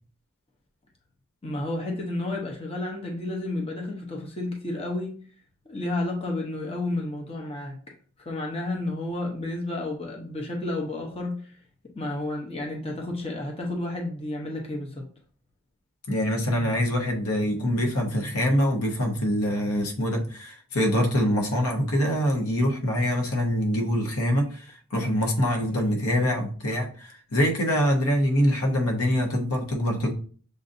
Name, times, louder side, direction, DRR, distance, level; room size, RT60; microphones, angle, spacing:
voice 1, 1.4-5.1 5.7-7.8 8.2-11.6 11.9-15.1, left 2 dB, 25° left, 0.7 m, -31 dB
voice 2, 16.1-30.1, equal, 80° left, 1.0 m, -24 dB
6.6 x 2.6 x 2.6 m
head